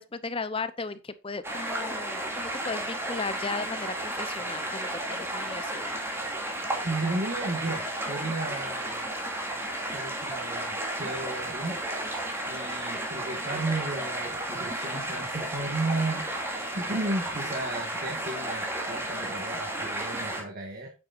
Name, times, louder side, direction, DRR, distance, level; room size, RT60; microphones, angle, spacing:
voice 1, 0.0-5.9 12.6-13.0, left 4 dB, 25° left, 0.6 m, -36 dB
sound 1, 1.4-20.4, right 1 dB, 10° right, 2.3 m, -33 dB
voice 2, 6.8-9.1 9.8-11.8 12.5-16.3 16.7-20.9, right 2 dB, 40° right, 1.8 m, -33 dB
8.9 x 8.9 x 2.6 m
head